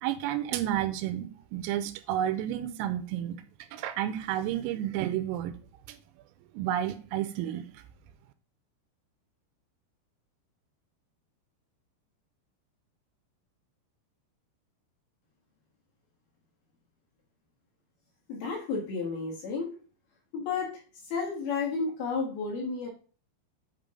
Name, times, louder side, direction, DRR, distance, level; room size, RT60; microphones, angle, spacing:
voice 1, 0.0-3.4 3.7-5.6 5.9-6.0 6.4-7.8, right 11 dB, 85° right, 3.3 m, -31 dB
voice 2, 18.3-19.8 20.3-20.7 21.0-22.9, left 4 dB, 60° left, 3.0 m, -32 dB
8.3 x 5.3 x 3.8 m
omnidirectional pair, 5.9 m